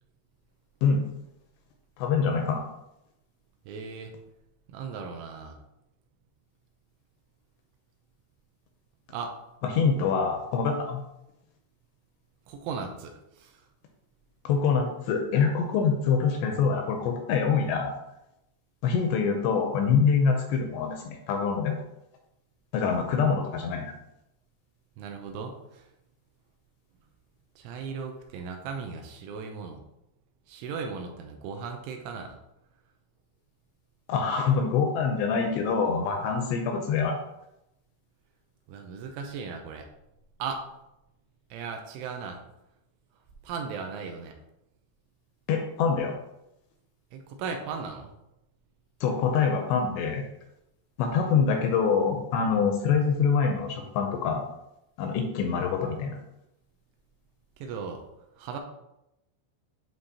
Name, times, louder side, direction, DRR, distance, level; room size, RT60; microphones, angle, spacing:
voice 1, 2.0-2.6 9.6-11.0 14.4-17.9 18.8-21.8 22.7-23.8 34.1-37.2 45.5-46.1 49.0-50.3 51.0-54.4 55.0-56.2, left 5 dB, 85° left, 3 dB, 2.5 m, -25 dB
voice 2, 3.7-4.1 4.7-5.6 9.1-9.3 12.5-13.7 25.0-25.9 27.6-29.8 30.5-32.4 38.7-39.9 40.4-40.7 41.5-42.4 43.4-44.4 47.1-48.1 57.6-58.0 58.4-58.6, right 5 dB, 85° right, 4 dB, 3.0 m, -37 dB
10.5 x 3.8 x 2.8 m, 0.87 s
omnidirectional pair, 5.6 m